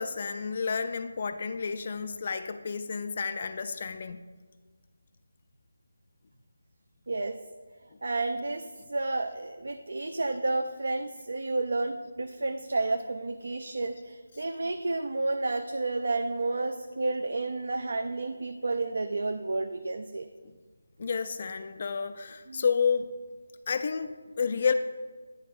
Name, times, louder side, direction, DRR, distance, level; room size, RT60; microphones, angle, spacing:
voice 1, 0.0-4.2 21.0-23.1 23.7-24.7, left 5 dB, 40° left, 10 dB, 0.3 m, -30 dB
voice 2, 7.1-7.4 8.0-20.3 22.5-22.6, right 2 dB, 60° right, 8 dB, 0.4 m, -31 dB
9.4 x 4.2 x 4.8 m, 1.4 s
figure-of-eight pair, 155°, 0 cm